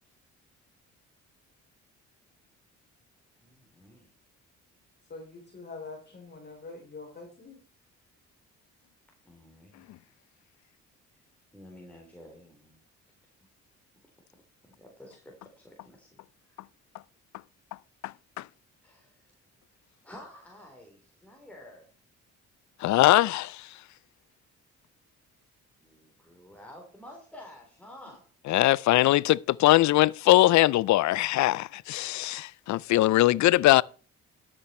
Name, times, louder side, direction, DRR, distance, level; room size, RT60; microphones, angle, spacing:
voice 1, 3.4-4.0 9.2-9.9 11.2-11.3 11.5-12.8 14.6-16.6 18.8-19.3 20.0-21.9 25.8-28.3, left 1 dB, 5° left, 3.7 m, -50 dB
voice 2, 5.1-7.6, left 3 dB, 35° left, 3.6 m, -44 dB
voice 3, 22.8-23.7 28.5-33.8, left 16 dB, 70° left, 0.5 m, -21 dB
12.0 x 8.7 x 4.3 m
cardioid pair, 90°, 30 cm